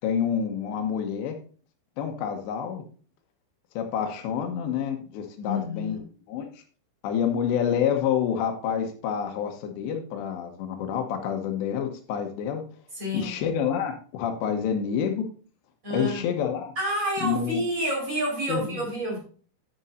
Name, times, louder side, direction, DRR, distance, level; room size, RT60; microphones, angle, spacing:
voice 1, 0.0-1.4 2.0-2.8 3.8-6.0 6.3-6.5 7.0-12.6 13.1-15.3 15.9-16.7 17.2-17.6 18.5-18.9, left 8 dB, 85° left, 5 dB, 3.2 m, -28 dB
voice 2, 5.4-6.0 13.0-13.4 15.8-16.2 16.8-19.2, equal, 20° right, -3 dB, 4.6 m, -29 dB
9.8 x 9.5 x 2.6 m, 0.42 s
omnidirectional pair, 5.0 m